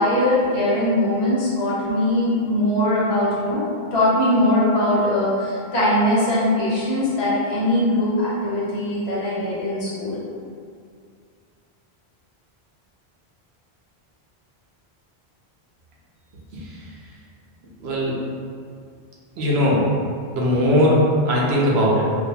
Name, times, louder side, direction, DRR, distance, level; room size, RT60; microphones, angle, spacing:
voice 1, 0.0-10.2, left 1 dB, 80° left, -9 dB, 1.1 m, -21 dB
voice 2, 17.8-18.2 19.4-19.9 20.3-22.0, equal, 75° right, -4 dB, 0.8 m, -19 dB
2.5 x 2.2 x 2.7 m, 2.3 s
omnidirectional pair, 1.1 m